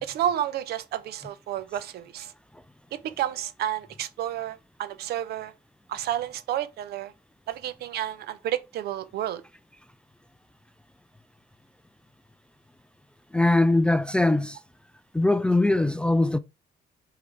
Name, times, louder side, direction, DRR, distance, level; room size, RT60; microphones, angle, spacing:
voice 1, 0.0-2.3 2.9-5.5 5.9-7.1 7.5-9.4, right 11 dB, 70° right, 0.9 m, -31 dB
voice 2, 13.3-14.6 15.1-16.4, left 2 dB, 5° left, 0.4 m, -21 dB
6.5 x 3.8 x 4.8 m
cardioid pair, 110°, 17 cm